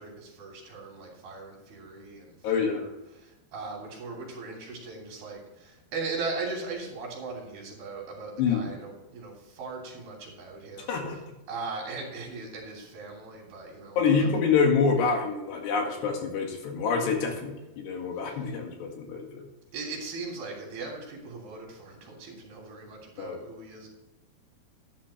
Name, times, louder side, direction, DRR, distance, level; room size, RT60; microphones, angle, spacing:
voice 1, 0.0-2.9 3.1-11.2 11.5-14.3 19.7-23.9, right 3 dB, 60° right, -1 dB, 4.8 m, -39 dB
voice 2, 2.4-2.8 8.4-8.7 10.9-11.2 14.0-19.5 23.2-23.4, left 5 dB, 75° left, 2 dB, 4.0 m, -26 dB
11.5 x 11.5 x 3.3 m, 1.0 s
omnidirectional pair, 5.0 m